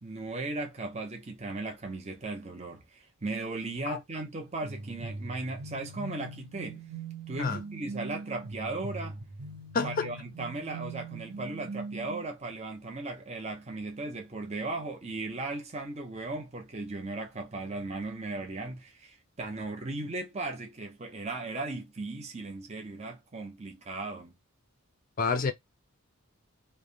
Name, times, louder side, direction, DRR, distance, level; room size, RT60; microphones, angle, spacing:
voice 1, 0.0-6.8 7.3-9.2 9.8-24.3, right 2 dB, 30° right, 0.7 m, -37 dB
sound 1, 4.6-12.2, right 3 dB, 85° right, 0.8 m, -41 dB
voice 2, 9.7-10.1 25.2-25.5, left 4 dB, 40° left, 0.5 m, -28 dB
3.2 x 2.1 x 2.5 m
head